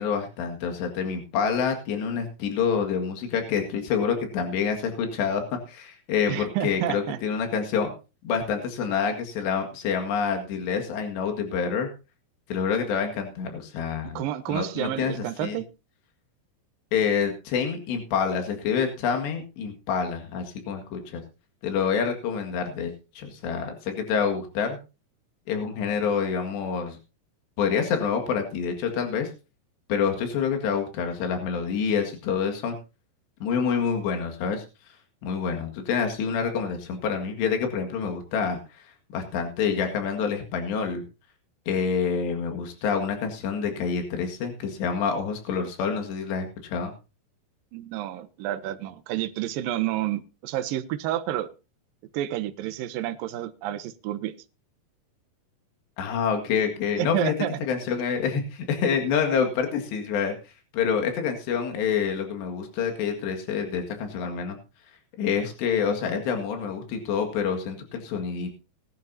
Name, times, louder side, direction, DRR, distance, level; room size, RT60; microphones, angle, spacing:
voice 1, 0.0-7.9 8.2-11.9 12.5-14.2 14.5-15.6 16.9-21.2 21.6-24.8 25.5-27.0 27.6-29.3 29.9-32.8 33.4-34.6 35.2-38.9 39.1-41.0 41.7-46.9 56.0-57.3 57.6-60.4 60.7-64.6 65.2-68.6, left 6 dB, 80° left, 4 dB, 4.1 m, -27 dB
voice 2, 6.3-7.2 14.2-15.7 47.7-51.5 52.1-54.3 57.0-57.6, right 12 dB, 70° right, 9 dB, 2.3 m, -29 dB
20.0 x 11.0 x 2.7 m, 0.30 s
omnidirectional pair, 4.8 m